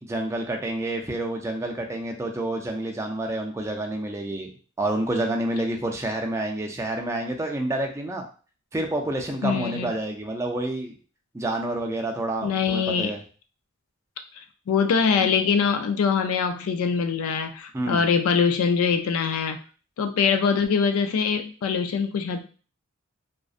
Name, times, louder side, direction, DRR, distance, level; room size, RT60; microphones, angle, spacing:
voice 1, 0.1-4.5 4.8-8.2 8.7-11.0 11.3-13.2 17.7-18.0, right 1 dB, 15° right, 2 dB, 0.3 m, -28 dB
voice 2, 9.4-9.9 12.4-13.1 14.7-19.6 20.0-22.4, left 6 dB, 90° left, 6 dB, 0.3 m, -23 dB
2.5 x 2.1 x 2.4 m, 0.38 s
head